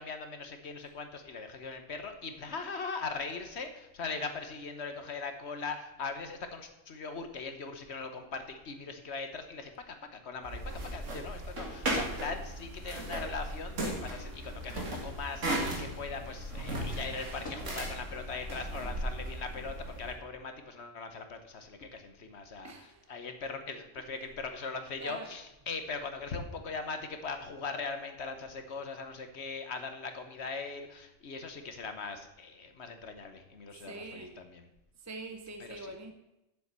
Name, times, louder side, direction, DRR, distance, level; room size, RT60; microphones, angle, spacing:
voice 1, 0.0-34.7 35.6-35.9, left 4 dB, 60° left, 7 dB, 1.3 m, -40 dB
sound 1, 10.4-20.1, right 1 dB, 70° right, 2.3 m, -37 dB
sound 2, 16.4-20.1, left 2 dB, 85° left, 2.5 m, -54 dB
voice 2, 22.6-23.1 23.9-24.2 25.0-25.4 33.7-34.4 35.0-36.1, right 2 dB, 20° right, 5 dB, 0.5 m, -44 dB
7.4 x 7.1 x 8.1 m, 0.90 s
omnidirectional pair, 1.3 m